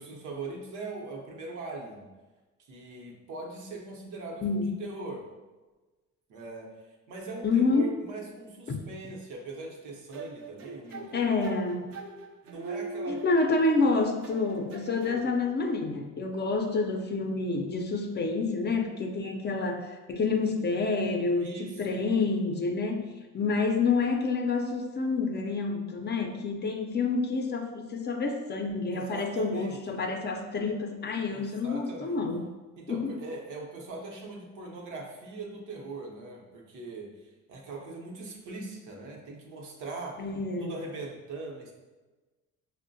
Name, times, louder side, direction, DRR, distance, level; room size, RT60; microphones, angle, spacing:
voice 1, 0.0-2.1 2.7-5.2 6.3-6.7 7.1-11.5 12.4-13.2 21.4-22.0 28.9-29.8 31.3-32.2 32.8-40.2 40.6-41.7, right 3 dB, 85° right, 0 dB, 0.8 m, -41 dB
voice 2, 7.4-7.9 8.7-8.8 10.9-11.9 13.1-32.4 32.9-33.1 40.2-40.7, left 3 dB, 35° left, 4 dB, 0.5 m, -28 dB
sound 1, 10.1-13.8 14.2-15.3, right 3 dB, 50° right, 0.5 m, -41 dB
5.3 x 2.1 x 2.5 m, 1.2 s
cardioid pair, 90°, 30 cm